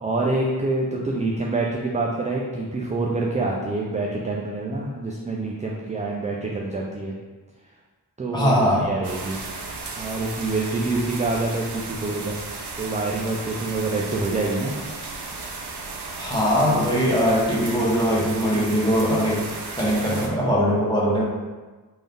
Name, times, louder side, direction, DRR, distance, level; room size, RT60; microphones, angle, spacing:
voice 1, 0.0-7.1 8.2-8.5 8.8-9.4 10.0-12.4 12.8-14.8, right 2 dB, 20° right, -2 dB, 0.3 m, -26 dB
voice 2, 8.3-8.9 16.2-19.5 19.7-21.2, equal, 10° left, -5 dB, 0.9 m, -21 dB
sound 1, 9.0-20.3, right 3 dB, 80° right, 0.6 m, -35 dB
3.7 x 2.6 x 3.3 m, 1.3 s
wide cardioid pair, 95°, 40 cm